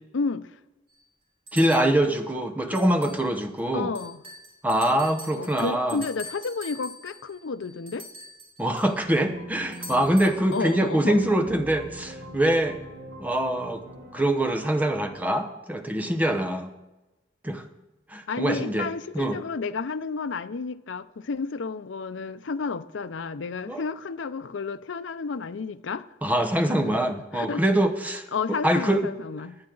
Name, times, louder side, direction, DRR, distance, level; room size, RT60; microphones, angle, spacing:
voice 1, 0.1-0.5 2.7-2.8 3.7-4.2 5.4-8.1 10.5-11.2 18.3-26.0 26.9-27.0 27.3-27.6 28.3-29.6, left 4 dB, 85° left, 0.5 m, -31 dB
sound 1, 0.9-1.0 1.5-2.0 2.7-3.3 3.6-3.7 3.9-8.9 9.7-10.8, equal, 30° right, 4.0 m, -43 dB
voice 2, 1.5-3.9 4.6-6.0 8.6-12.8 13.2-13.8 14.1-16.7 17.4-17.7 18.1-18.9 19.1-19.4 23.7-23.8 26.2-29.1, right 1 dB, 10° right, 0.9 m, -24 dB
sound 2, 9.0-15.1, equal, 55° right, 1.5 m, -41 dB
17.5 x 9.7 x 3.9 m
head